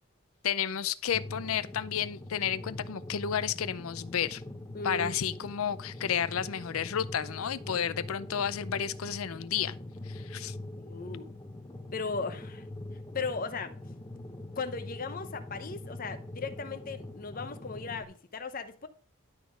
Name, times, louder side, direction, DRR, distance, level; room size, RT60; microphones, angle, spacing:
voice 1, 0.4-4.4 4.8-9.8 10.1-10.6, left 8 dB, 85° left, 0.5 m, -31 dB
sound 1, 1.1-18.0, left 1 dB, 15° left, 1.0 m, -43 dB
voice 2, 4.7-5.2 10.8-11.3 11.9-12.7 13.1-13.7 14.6-18.9, left 4 dB, 40° left, 0.8 m, -37 dB
11.5 x 4.1 x 5.0 m
head